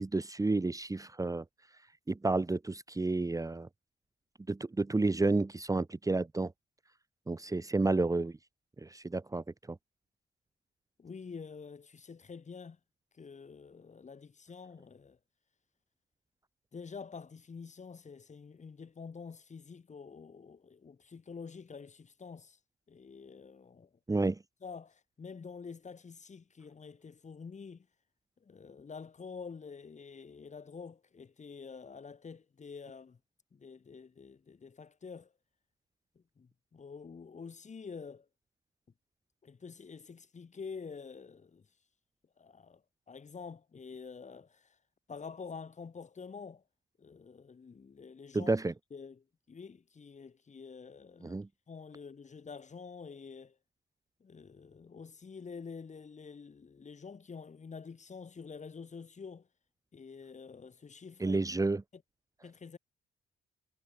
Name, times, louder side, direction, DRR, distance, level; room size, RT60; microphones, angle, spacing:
voice 1, 0.0-1.4 2.1-3.7 4.5-6.5 7.3-8.4 8.8-9.8 24.1-24.4 48.3-48.7 51.2-51.5 61.2-61.8, right 3 dB, 15° right, 1.5 m, -31 dB
voice 2, 11.0-12.8 13.1-15.2 16.7-22.6 22.9-23.9 24.6-27.9 28.4-33.2 33.5-35.3 36.1-38.3 39.4-41.7 42.4-44.8 45.1-46.6 47.0-48.5 48.9-51.4 51.7-53.6 54.2-59.5 59.9-61.4 61.9-62.0 62.4-62.8, left 5 dB, 35° left, 4.7 m, -47 dB
cardioid pair, 90°, 20 cm